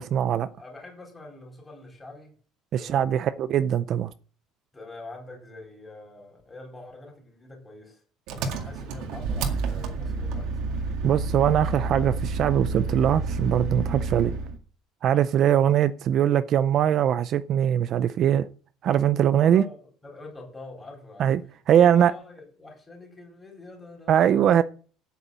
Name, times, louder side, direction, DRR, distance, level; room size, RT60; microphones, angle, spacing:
voice 1, 0.0-0.5 2.7-4.1 11.0-14.3 15.0-18.5 18.8-19.6 21.2-21.4 21.7-22.1 24.1-24.6, right 10 dB, 40° right, 0.4 m, -21 dB
voice 2, 0.6-2.3 2.7-3.1 4.7-8.0 8.3-10.9 15.3-15.5 18.9-19.0 19.5-21.4 21.7-24.6, left 2 dB, 10° left, 4.1 m, -45 dB
Engine, 8.3-14.6, right 4 dB, 60° right, 2.0 m, -29 dB
8.3 x 8.3 x 7.4 m
cardioid pair, 170°, 0 cm